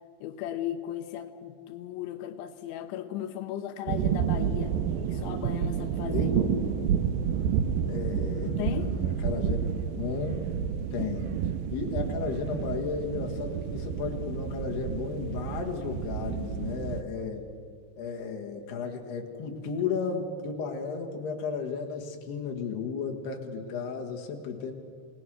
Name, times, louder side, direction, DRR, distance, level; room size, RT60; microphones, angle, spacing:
voice 1, 0.2-4.8 5.1-6.4 8.4-9.0, left 11 dB, 85° left, 9 dB, 3.2 m, -36 dB
sound 1, 3.9-17.0, right 8 dB, 80° right, 2.0 m, -30 dB
voice 2, 6.1-6.5 6.8-6.9 7.9-9.6 10.0-10.4 10.9-11.4 11.7-17.4 18.0-24.7, left 5 dB, 65° left, 2 dB, 3.7 m, -34 dB
29.0 x 19.0 x 6.3 m, 2.2 s
omnidirectional pair, 5.3 m